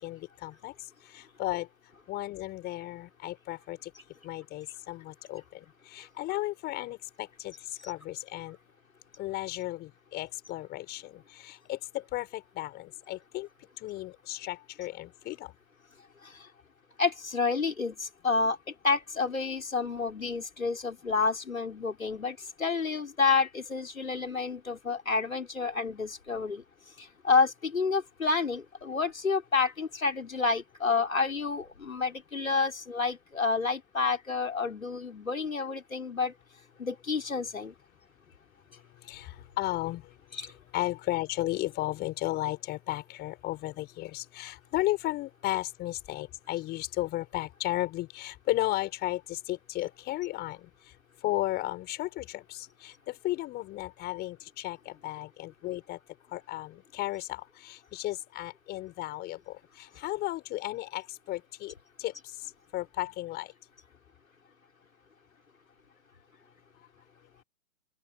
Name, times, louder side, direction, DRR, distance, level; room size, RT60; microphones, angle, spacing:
voice 1, 0.0-0.7 1.1-1.7 2.1-3.9 4.2-8.6 9.2-13.5 13.8-15.5 39.0-40.1 40.4-50.7 51.2-56.0 56.3-61.7 62.0-62.1 62.7-63.5, left 17 dB, 25° left, 5.7 m, -34 dB
voice 2, 17.0-18.6 18.8-26.6 27.0-36.3 36.8-37.7 40.3-40.5, left 4 dB, 90° left, 5.0 m, -29 dB
open air
hypercardioid pair, 130°, 39 cm